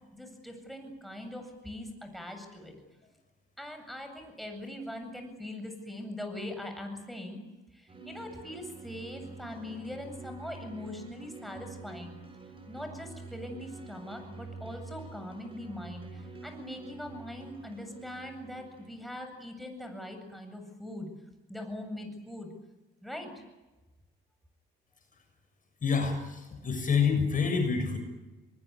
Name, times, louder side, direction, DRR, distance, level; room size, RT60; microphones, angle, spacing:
voice 1, 0.1-2.7 3.6-7.4 7.7-12.1 12.7-21.1 21.5-22.5 23.0-23.4, left 1 dB, ahead, 5 dB, 8.0 m, -41 dB
sound 1, 7.9-19.1, right 3 dB, 25° right, 7.1 m, -47 dB
voice 2, 25.8-28.0, left 5 dB, 40° left, 5 dB, 6.9 m, -27 dB
24.5 x 21.0 x 9.8 m, 1.1 s
cardioid pair, 90°, 20 cm